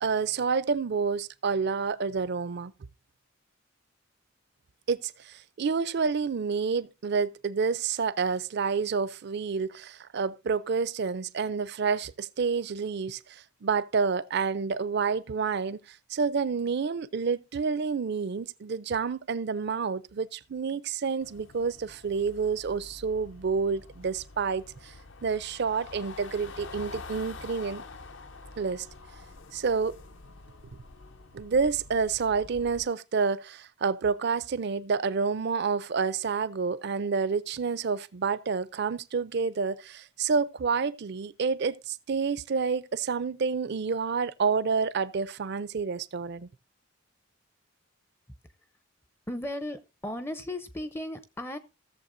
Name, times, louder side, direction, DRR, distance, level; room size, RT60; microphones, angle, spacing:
voice 1, 0.0-2.7 4.9-24.9 25.2-27.8 28.6-28.9 29.5-30.0 31.3-46.5, right 5 dB, 50° right, 0.4 m, -29 dB
sound 1, 21.2-32.8, left 3 dB, 60° left, 0.6 m, -47 dB
voice 2, 49.3-51.6, left 1 dB, 10° left, 0.5 m, -36 dB
16.0 x 7.1 x 2.6 m
head